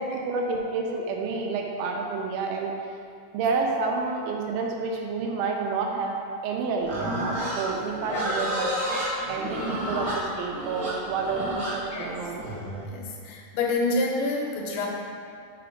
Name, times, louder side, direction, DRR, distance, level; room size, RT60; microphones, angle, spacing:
voice 1, 0.0-2.7 3.3-6.1 6.4-9.0 9.3-12.4, right 4 dB, 85° right, 0 dB, 2.5 m, -29 dB
Livestock farm animals working animals, 6.8-12.9, equal, 60° right, 1.2 m, -30 dB
voice 2, 12.9-14.9, left 2 dB, 75° left, -1 dB, 2.4 m, -28 dB
6.0 x 4.8 x 5.1 m, 2.3 s
omnidirectional pair, 4.1 m